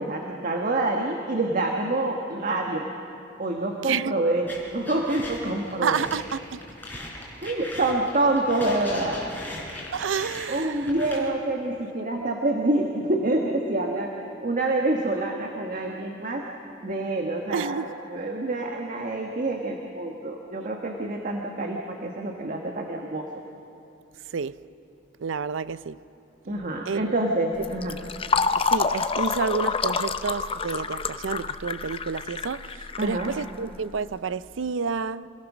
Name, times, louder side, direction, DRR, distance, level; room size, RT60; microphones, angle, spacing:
voice 1, 0.0-2.9 3.4-6.0 7.4-9.2 10.5-14.1 14.4-16.4 16.8-23.3 26.5-28.0 33.0-33.3, right 2 dB, 45° right, 1.4 m, -27 dB
voice 2, 3.8-4.1 5.8-6.6 9.9-10.9 17.5-17.9 24.3-24.6 25.2-26.0 26.9-27.1 28.7-35.3, right 5 dB, 85° right, 0.5 m, -29 dB
sound 1, 4.5-11.2, left 1 dB, 10° left, 4.2 m, -39 dB
Fill (with liquid), 27.6-34.0, left 5 dB, 30° left, 0.6 m, -28 dB
26.0 x 18.0 x 6.1 m
head